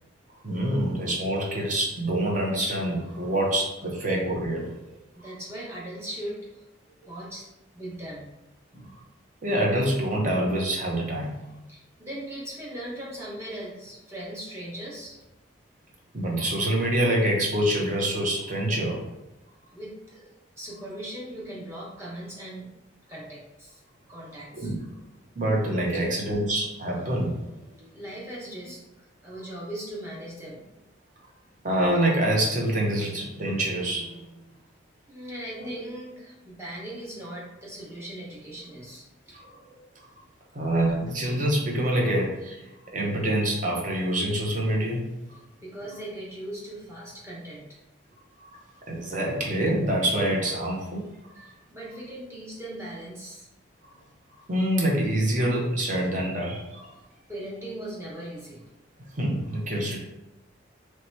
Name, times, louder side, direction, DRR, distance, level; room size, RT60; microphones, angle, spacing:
voice 1, 0.4-4.7 5.2-5.3 9.4-11.3 16.1-19.0 24.5-24.8 25.4-27.4 31.6-34.2 35.6-35.7 39.4-39.8 40.5-42.6 42.9-45.0 45.3-45.4 48.4-48.5 48.9-51.1 51.4-51.5 54.5-56.9 59.2-60.0, right 1 dB, 40° right, -1 dB, 0.8 m, -26 dB
voice 2, 5.1-6.4 7.1-7.4 7.7-8.3 8.7-8.9 11.7-15.2 19.7-22.7 23.1-23.8 24.1-24.7 25.9-26.1 27.9-28.8 29.2-30.6 35.1-39.4 45.6-47.7 51.4-53.5 57.3-58.6, right 1 dB, 15° right, -6 dB, 1.0 m, -39 dB
3.2 x 2.8 x 4.5 m, 0.97 s
head